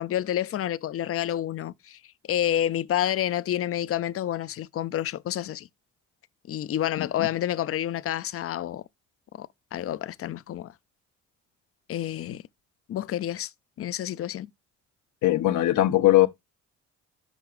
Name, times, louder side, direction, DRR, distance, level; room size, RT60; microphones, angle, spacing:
voice 1, 0.0-2.0 2.3-5.7 6.5-8.8 9.4-10.7 11.9-12.4 12.9-13.5 13.8-14.5, left 11 dB, 50° left, 0.5 m, -29 dB
voice 2, 7.0-7.3 15.2-16.3, left 15 dB, 80° left, 0.7 m, -20 dB
8.0 x 5.7 x 2.4 m
cardioid pair, 90°, 30 cm